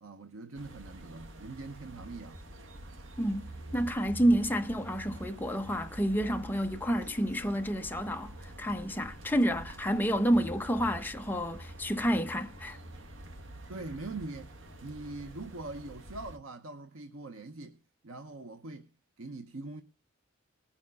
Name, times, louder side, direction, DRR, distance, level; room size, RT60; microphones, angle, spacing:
voice 1, 0.0-2.4 13.7-14.5 14.8-18.9 19.2-19.8, right 2 dB, 85° right, 1.0 m, -42 dB
sound 1, 0.5-16.4, right 1 dB, 65° right, 1.4 m, -47 dB
voice 2, 3.2-12.8, equal, 10° left, 0.9 m, -29 dB
19.0 x 7.2 x 5.4 m
head